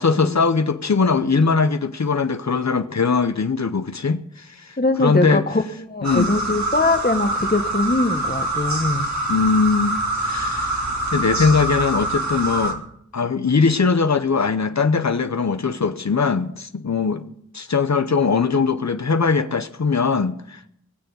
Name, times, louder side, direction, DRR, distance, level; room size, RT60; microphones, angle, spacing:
voice 1, 0.0-5.4 6.0-6.3 9.3-10.8 11.1-12.8 13.1-17.2 17.5-20.7, left 5 dB, 65° left, 0.7 m, -21 dB
voice 2, 4.8-5.6 5.9-9.1, left 2 dB, 35° left, 1.2 m, -21 dB
sound 1, 6.0-12.7, right 2 dB, 75° right, 2.3 m, -25 dB
19.5 x 6.8 x 8.2 m
wide cardioid pair, 50°, 29 cm